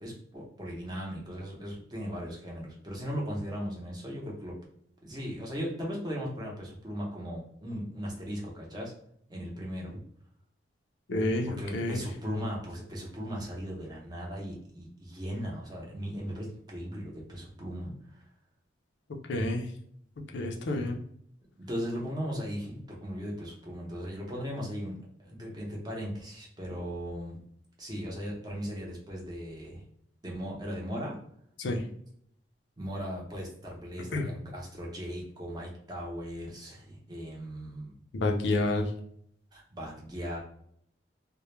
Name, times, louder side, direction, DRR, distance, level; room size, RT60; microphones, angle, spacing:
voice 1, 0.0-4.5 5.0-8.9 9.3-10.0 11.6-18.2 21.6-24.9 25.2-27.4 27.8-29.8 30.2-31.1 32.8-37.9 39.5-40.4, equal, 25° right, -3 dB, 0.7 m, -37 dB
voice 2, 11.1-12.0 19.3-19.7 20.3-21.0 31.6-31.8 34.1-34.3 38.1-38.9, left 2 dB, 75° left, 3 dB, 0.4 m, -29 dB
2.2 x 2.1 x 3.0 m, 0.67 s
head